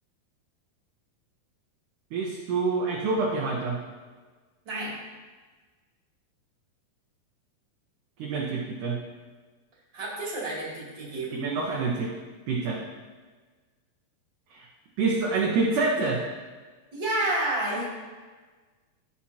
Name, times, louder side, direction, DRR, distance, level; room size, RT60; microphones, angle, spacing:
voice 1, 2.1-3.8 8.2-9.0 11.3-12.1 12.5-12.8 14.5-14.7 15.0-16.2, right 4 dB, 70° right, -2 dB, 2.1 m, -27 dB
voice 2, 9.9-11.5 16.9-17.9, right 1 dB, 30° right, -6 dB, 3.0 m, -30 dB
16.0 x 5.9 x 2.8 m, 1.4 s
omnidirectional pair, 4.4 m